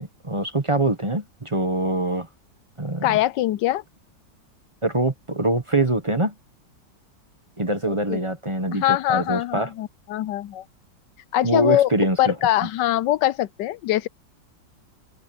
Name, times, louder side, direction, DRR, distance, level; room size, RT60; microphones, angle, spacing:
voice 1, 0.0-2.3 2.8-3.2 4.8-6.3 7.6-9.7 11.4-12.3, right 1 dB, 20° right, 1.1 m, -24 dB
voice 2, 3.0-3.8 7.9-8.2 8.7-10.6 11.3-11.9 12.2-14.1, left 13 dB, 75° left, 1.3 m, -23 dB
open air
omnidirectional pair, 2.0 m